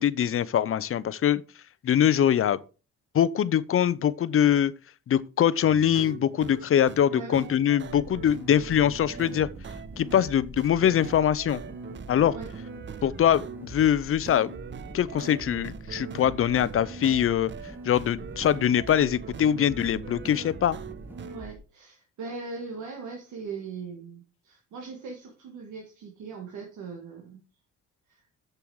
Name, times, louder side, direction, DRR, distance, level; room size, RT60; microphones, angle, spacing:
voice 1, 0.0-1.4 1.8-2.6 3.1-4.7 5.1-9.5 10.0-11.6 12.1-12.3 13.0-14.5 14.9-17.5 17.8-20.8, left 10 dB, 45° left, 0.6 m, -23 dB
sound 1, 5.6-21.4, right 8 dB, 40° right, 0.6 m, -42 dB
voice 2, 7.1-7.5 12.3-12.5 21.3-27.4 28.1-28.2, right 4 dB, 75° right, 1.8 m, -40 dB
sound 2, 7.8-21.5, equal, 5° right, 1.4 m, -44 dB
6.9 x 6.9 x 4.7 m
cardioid pair, 90°, 30 cm